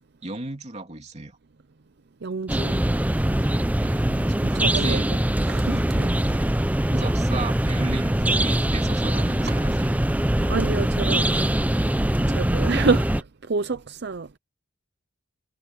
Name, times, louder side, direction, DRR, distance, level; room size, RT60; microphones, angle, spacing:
voice 1, 0.2-1.4 3.8-4.1 4.5-5.1 5.7-5.9 6.2-6.5 6.9-10.0, right 2 dB, 35° right, 2.9 m, -34 dB
voice 2, 2.2-2.8 4.1-5.0 5.5-6.1 9.5-9.6 10.4-11.3 12.2-14.3, right 4 dB, 60° right, 0.6 m, -28 dB
sound 1, 2.5-13.2, right 1 dB, 10° right, 0.6 m, -22 dB
head